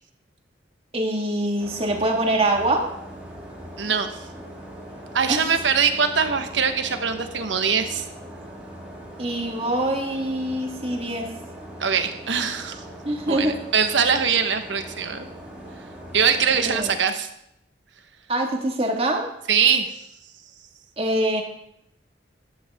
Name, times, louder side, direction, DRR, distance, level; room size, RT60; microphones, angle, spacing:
voice 1, 0.9-2.9 5.3-5.4 9.2-11.3 13.1-13.6 16.6-16.9 18.3-19.3 21.0-21.4, right 1 dB, 30° right, 1 dB, 1.9 m, -24 dB
sound 1, 1.6-17.0, right 1 dB, 10° right, 2.6 m, -40 dB
voice 2, 3.8-4.1 5.1-8.1 11.8-12.8 13.3-15.3 16.1-17.3 19.5-19.9, right 6 dB, 80° right, 7 dB, 1.2 m, -22 dB
14.0 x 10.5 x 3.6 m, 0.78 s
head